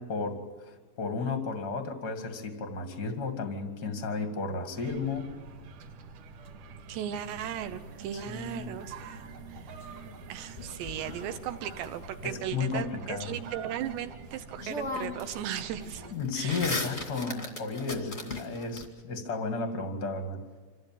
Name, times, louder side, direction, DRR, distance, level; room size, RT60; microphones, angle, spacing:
voice 1, 0.0-5.3 8.1-8.7 12.2-13.3 16.1-20.4, left 4 dB, 80° left, 6 dB, 0.9 m, -33 dB
sound 1, 4.7-16.1, right 4 dB, 60° right, 2.3 m, -46 dB
voice 2, 6.9-9.9 10.3-16.0 16.3-16.7, right 10 dB, 80° right, 10 dB, 2.5 m, -37 dB
sound 2, 7.2-12.4, equal, 40° right, 1.1 m, -53 dB
sound 3, 10.6-11.8 14.1-14.2 14.6-15.4 15.7-18.8, left 2 dB, 50° left, 0.7 m, -37 dB
26.5 x 14.5 x 9.0 m, 1.4 s
omnidirectional pair, 5.7 m